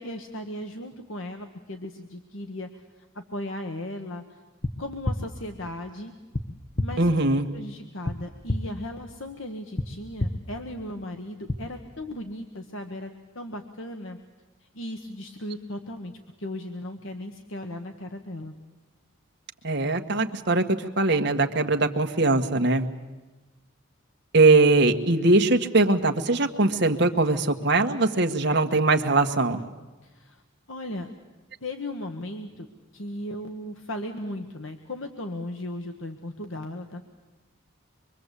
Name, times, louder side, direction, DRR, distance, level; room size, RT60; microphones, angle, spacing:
voice 1, 0.0-4.4 4.8-6.1 6.8-14.2 14.6-18.5 30.0-30.4 30.7-31.1 31.6-32.7 32.9-37.0, left 1 dB, 70° left, 5 dB, 1.6 m, -37 dB
sound 1, 4.6-4.7 5.0-5.2 6.3-6.4 6.8-6.9 8.0-8.1 8.5-8.6 9.8-9.9 10.2-10.3 11.5-11.6, left 1 dB, 35° left, 1.2 m, -26 dB
voice 2, 7.0-7.5 19.6-22.9 24.3-29.6, right 2 dB, 55° right, 6 dB, 1.6 m, -21 dB
25.5 x 23.5 x 8.4 m, 1.2 s
head